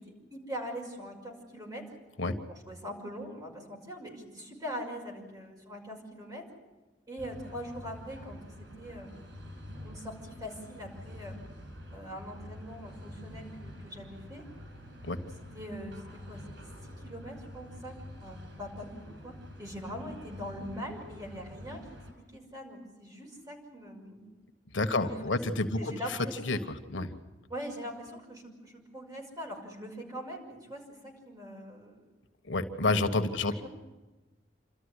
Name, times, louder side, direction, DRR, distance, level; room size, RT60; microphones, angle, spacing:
voice 1, 0.0-1.9 2.5-6.5 7.1-9.2 9.8-11.4 11.9-14.4 15.5-16.4 16.9-21.8 22.2-24.2 24.9-25.4 25.8-26.6 27.5-32.0 32.8-33.7, equal, 20° right, 0 dB, 5.9 m, -42 dB
sound 1, 7.2-22.1, left 1 dB, 80° right, 7.1 m, -47 dB
voice 2, 24.7-26.6 26.9-27.1 32.5-33.7, left 2 dB, 85° left, 7 dB, 1.5 m, -29 dB
28.0 x 13.5 x 9.9 m, 1.2 s
head